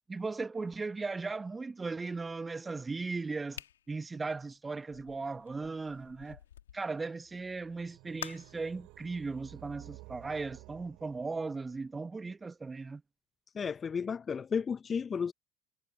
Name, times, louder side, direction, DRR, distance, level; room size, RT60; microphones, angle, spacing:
voice 1, 0.1-3.6 3.9-6.4 6.7-13.0, right 3 dB, 20° right, 2.0 m, -37 dB
sound 1, 3.5-6.8 8.2-8.7, left 10 dB, 75° left, 2.9 m, -48 dB
sound 2, 7.2-11.9, right 23 dB, 55° right, 6.0 m, -54 dB
voice 2, 13.5-15.3, left 6 dB, 30° left, 1.3 m, -33 dB
figure-of-eight pair, 65°, 0 cm